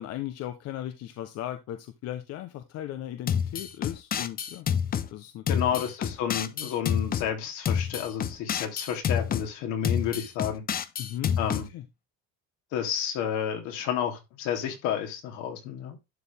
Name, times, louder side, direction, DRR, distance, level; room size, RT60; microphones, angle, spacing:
voice 1, 0.0-4.7 5.1-5.8 11.0-11.8, left 12 dB, 55° left, 0.9 m, -37 dB
sound 1, 3.3-5.1 5.5-7.3 7.6-9.5 9.8-11.6, left 8 dB, 30° left, 0.7 m, -28 dB
voice 2, 5.5-10.6 11.4-11.6 12.7-16.0, left 9 dB, 75° left, 3.0 m, -31 dB
11.5 x 4.3 x 3.4 m
cardioid pair, 130°, 30 cm